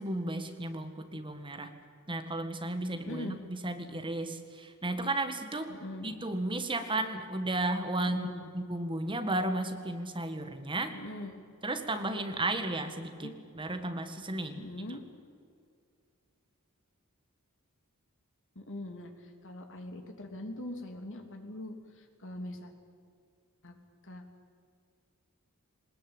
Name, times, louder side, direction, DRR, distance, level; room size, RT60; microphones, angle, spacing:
voice 1, 0.0-1.7 2.1-5.7 6.0-8.2 8.5-11.0 11.6-14.6, right 2 dB, 25° right, 7 dB, 1.7 m, -34 dB
voice 2, 3.1-3.4 5.7-6.2 8.0-8.5 10.9-11.4 13.2-13.3 14.5-15.0 18.5-22.7 23.6-23.7 24.0-24.2, left 1 dB, 60° left, 4 dB, 3.0 m, -42 dB
21.5 x 20.0 x 9.0 m, 2.3 s
head